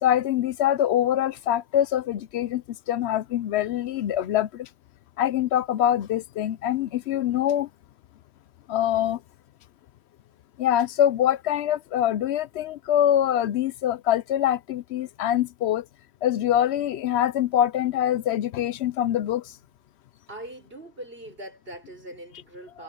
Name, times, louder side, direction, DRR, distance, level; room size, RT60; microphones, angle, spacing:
voice 1, 0.0-4.7 5.2-7.7 8.7-9.2 10.6-15.9 16.2-19.5, left 11 dB, 80° left, 0.9 m, -24 dB
voice 2, 20.3-22.8, right 1 dB, 60° right, 7.1 m, -41 dB
omnidirectional pair, 1.1 m